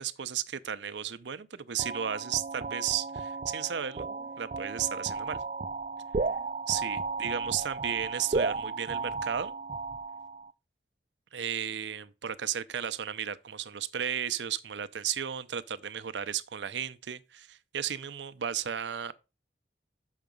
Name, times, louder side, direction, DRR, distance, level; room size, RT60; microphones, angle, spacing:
voice 1, 0.0-4.1 4.4-5.4 6.7-9.5 11.3-19.1, right 9 dB, 85° right, 0.6 m, -34 dB
sound 1, 1.8-10.5, right 4 dB, 40° right, 0.4 m, -34 dB
7.3 x 5.8 x 5.2 m
head